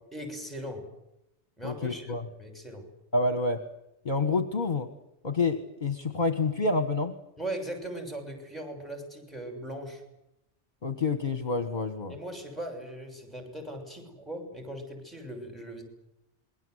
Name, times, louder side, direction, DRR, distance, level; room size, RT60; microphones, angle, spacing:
voice 1, 0.1-0.9 1.6-2.1 2.4-2.9 7.4-10.0 12.1-15.8, right 1 dB, ahead, 5 dB, 6.8 m, -39 dB
voice 2, 1.6-2.2 3.1-3.6 4.0-4.9 5.2-7.1 10.8-12.1, left 3 dB, 40° left, 9 dB, 1.6 m, -28 dB
27.5 x 22.0 x 8.1 m, 0.85 s
omnidirectional pair, 1.2 m